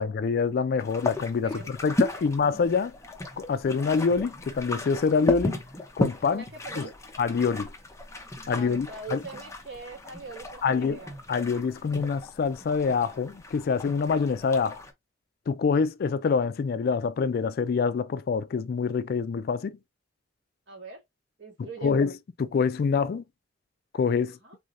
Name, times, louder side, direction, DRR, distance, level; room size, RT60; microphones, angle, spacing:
voice 1, 0.0-2.9 3.4-5.6 6.0-6.4 6.8-6.9 7.2-7.7 8.5-9.2 10.6-11.0 11.3-14.8 15.5-19.8 21.6-22.1 22.4-23.2 23.9-24.4, left 5 dB, 50° left, 0.3 m, -26 dB
sound 1, 0.8-14.9, left 1 dB, 15° left, 0.6 m, -35 dB
voice 2, 6.3-6.9 8.5-11.1 20.7-21.0 21.4-22.0 24.4-24.6, right 4 dB, 60° right, 2.3 m, -42 dB
3.7 x 3.3 x 2.5 m
head